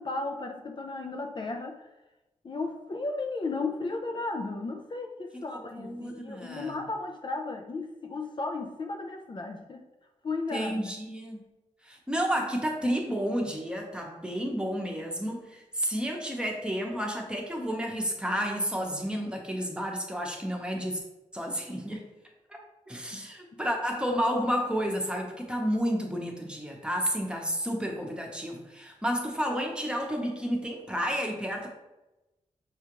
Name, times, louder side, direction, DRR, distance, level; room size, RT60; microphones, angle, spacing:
voice 1, 0.0-1.9 2.4-9.8 10.2-10.8 23.1-23.3, left 3 dB, 40° left, 3 dB, 0.4 m, -34 dB
voice 2, 5.8-6.8 10.5-11.4 11.8-21.0 21.3-22.0 22.5-22.6 22.9-31.7, equal, 10° right, 1 dB, 0.9 m, -31 dB
5.6 x 2.4 x 2.9 m, 1.0 s
cardioid pair, 65°, 13 cm